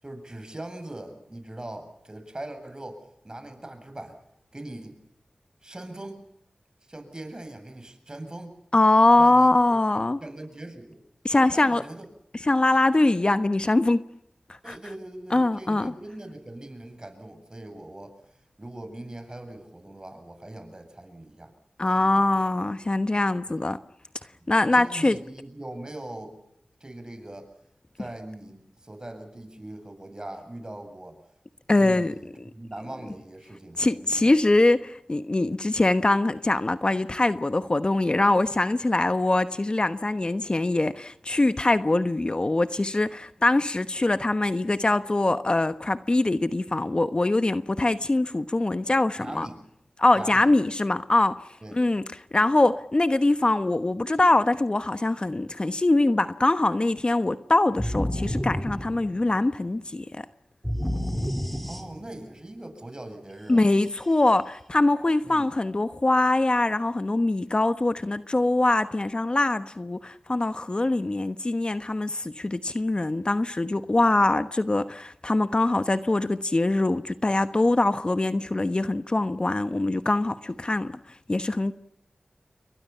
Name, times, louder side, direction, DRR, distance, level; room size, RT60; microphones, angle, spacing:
voice 1, 0.0-4.2 4.5-5.0 5.6-6.2 6.9-8.6 9.1-9.8 10.2-11.0 11.5-12.1 14.6-18.2 18.6-21.5 22.0-22.2 23.5-23.6 24.4-26.4 26.8-27.5 28.0-31.2 31.8-34.3 49.2-49.6 50.1-50.5 51.6-51.8 61.6-63.6 65.2-65.4, right 1 dB, 30° right, 7.8 m, -41 dB
voice 2, 8.7-10.2 11.2-11.8 12.5-14.0 14.7-14.8 15.3-15.9 21.8-23.8 24.5-25.2 31.7-32.1 33.8-49.5 50.0-51.4 51.7-52.0 52.3-60.2 63.5-80.9 81.3-81.7, left 2 dB, 40° left, 1.1 m, -23 dB
sound 1, 57.8-59.5 60.6-62.3, equal, 5° left, 4.5 m, -30 dB
29.5 x 23.5 x 5.8 m
cardioid pair, 40°, 3 cm